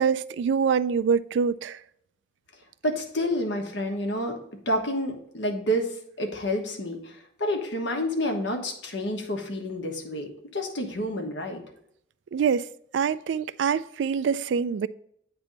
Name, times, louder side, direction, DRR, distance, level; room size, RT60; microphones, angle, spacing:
voice 1, 0.0-1.8 12.3-12.7 12.9-14.9, right 6 dB, 75° right, 0.3 m, -25 dB
voice 2, 2.8-4.4 4.6-5.9 6.2-11.6, equal, 75° left, 1.3 m, -29 dB
8.9 x 3.4 x 5.2 m
head